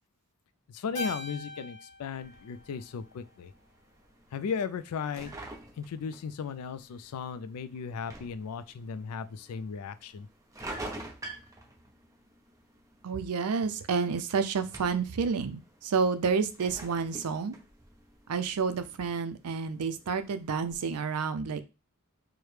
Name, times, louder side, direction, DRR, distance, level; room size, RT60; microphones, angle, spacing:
voice 1, 0.7-3.5 4.3-5.4 5.8-10.3, left 6 dB, 75° left, 13 dB, 0.4 m, -36 dB
Keyboard (musical), 0.9-3.5, left 2 dB, 35° left, 0.9 m, -42 dB
sound 1, 2.1-20.8, right 2 dB, 15° right, 0.6 m, -49 dB
voice 2, 13.0-17.5 18.3-21.6, right 5 dB, 80° right, 11 dB, 0.5 m, -30 dB
4.8 x 2.1 x 3.2 m, 0.29 s
head